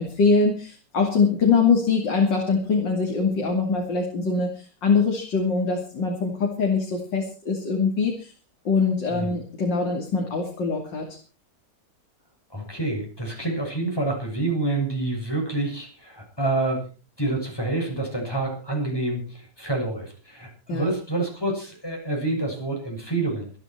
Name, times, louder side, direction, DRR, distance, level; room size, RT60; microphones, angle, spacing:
voice 1, 0.0-8.3 8.7-11.1 20.7-20.9, left 4 dB, 90° left, 1 dB, 3.5 m, -23 dB
voice 2, 12.5-16.9 17.2-23.6, right 2 dB, 10° left, 0 dB, 7.1 m, -27 dB
25.5 x 10.0 x 4.6 m, 0.37 s
omnidirectional pair, 1.9 m